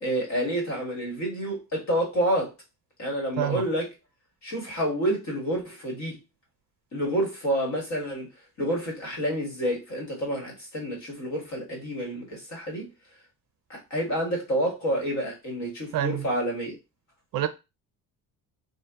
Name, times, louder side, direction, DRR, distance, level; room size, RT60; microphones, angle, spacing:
voice 1, 0.0-2.5 3.0-3.9 4.4-6.2 6.9-8.3 8.6-12.9 13.7-16.8, equal, 50° left, 1.5 m, -28 dB
voice 2, 15.9-16.3 17.3-17.5, right 12 dB, 65° right, 0.5 m, -27 dB
2.7 x 2.4 x 3.5 m
cardioid pair, 155°, 37 cm